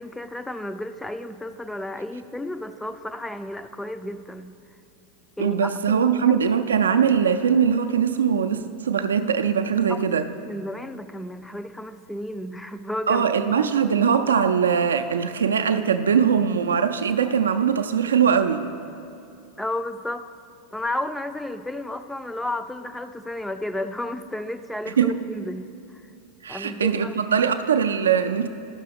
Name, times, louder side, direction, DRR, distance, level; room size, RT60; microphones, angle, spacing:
voice 1, 0.0-4.6 5.4-6.0 9.9-13.3 19.6-20.3 20.7-26.0 26.5-27.2, left 1 dB, 5° left, 10 dB, 0.3 m, -32 dB
voice 2, 5.4-10.3 13.1-18.7 25.0-25.2 26.4-28.5, right 7 dB, 75° right, 8 dB, 0.3 m, -21 dB
12.0 x 6.0 x 3.4 m, 2.6 s
figure-of-eight pair, 85°, 0 cm